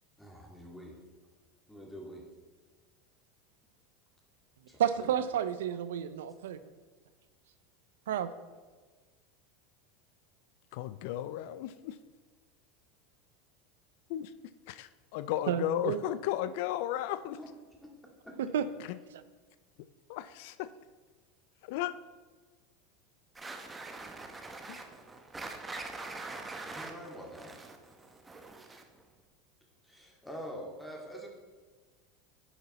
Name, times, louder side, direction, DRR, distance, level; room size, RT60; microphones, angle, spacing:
voice 1, 0.2-1.0 1.7-2.3 4.7-5.1 17.4-17.5 17.8-18.4 26.6-27.6 29.8-31.3, equal, 5° left, 0 dB, 2.0 m, -46 dB
voice 2, 4.8-6.6 8.1-8.3 15.5-16.0 18.4-18.7, right 9 dB, 85° right, 13 dB, 0.4 m, -31 dB
voice 3, 10.7-12.0 14.1-14.3 14.7-17.4 18.9-19.0 20.1-20.7 21.6-21.9 24.7-24.8, left 13 dB, 65° left, 15 dB, 0.3 m, -34 dB
sound 1, 23.3-29.0, right 3 dB, 15° right, 0.9 m, -44 dB
9.8 x 5.5 x 4.1 m, 1.4 s
hypercardioid pair, 105°, 0 cm